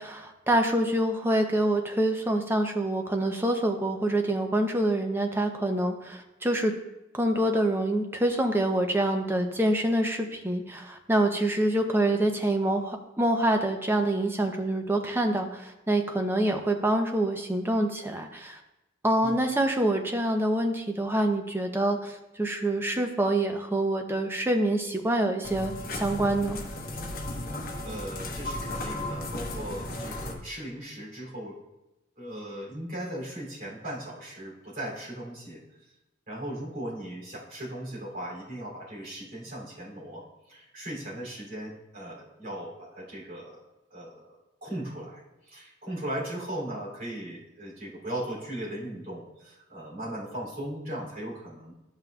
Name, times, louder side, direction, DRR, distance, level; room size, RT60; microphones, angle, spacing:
voice 1, 0.0-6.8 7.1-18.6 19.0-26.6, right 1 dB, 10° right, 4 dB, 0.6 m, -26 dB
sound 1, 25.4-30.3, left 1 dB, 45° left, 1.0 m, -35 dB
voice 2, 27.8-31.6 32.2-35.6 36.3-43.6 43.9-44.2 44.6-51.7, right 1 dB, 45° right, -5 dB, 2.8 m, -38 dB
12.5 x 5.7 x 2.3 m, 0.97 s
head